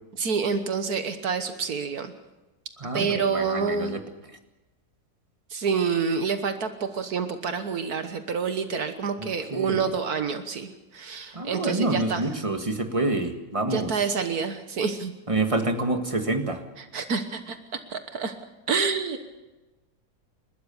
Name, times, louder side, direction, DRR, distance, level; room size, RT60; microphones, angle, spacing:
voice 1, 0.2-2.1 2.9-3.9 5.5-12.3 13.7-15.1 16.8-18.3 18.7-19.2, right 5 dB, 70° right, 8 dB, 1.7 m, -28 dB
voice 2, 2.8-4.0 9.2-9.9 11.3-13.9 15.3-16.6, right 2 dB, 20° right, 6 dB, 1.7 m, -27 dB
29.0 x 13.0 x 7.0 m, 1.1 s
omnidirectional pair, 1.7 m